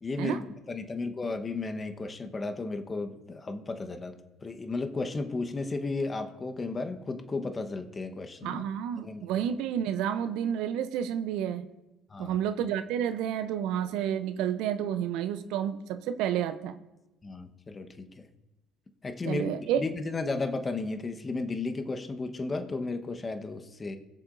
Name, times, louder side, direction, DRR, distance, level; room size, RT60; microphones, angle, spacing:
voice 1, 0.0-4.1 4.4-8.6 9.0-9.4 12.1-12.4 17.2-18.3 19.0-19.5 19.8-24.0, left 3 dB, 30° left, 1.1 m, -34 dB
voice 2, 8.4-11.7 12.2-16.8 19.3-19.8, right 9 dB, 70° right, 0.6 m, -30 dB
21.0 x 7.2 x 2.6 m
hypercardioid pair, 65°, 0 cm